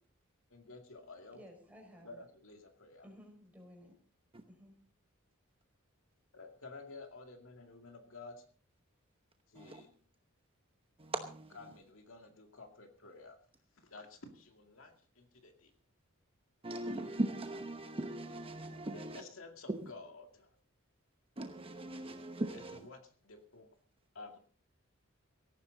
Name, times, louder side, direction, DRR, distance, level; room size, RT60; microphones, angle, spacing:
voice 1, 0.5-1.4 2.0-3.1 6.3-8.4 9.5-9.9 11.5-13.4 13.8-15.7 18.9-20.5 22.5-23.7 24.1-24.4, left 3 dB, 65° left, 2.3 m, -52 dB
voice 2, 1.3-2.2 3.0-3.9 4.5-4.7, equal, 5° right, 5.4 m, -55 dB
voice 3, 11.0-11.7 16.6-19.2 19.7-19.8 21.4-22.9, right 1 dB, 25° right, 0.9 m, -39 dB
18.0 x 14.5 x 4.0 m
head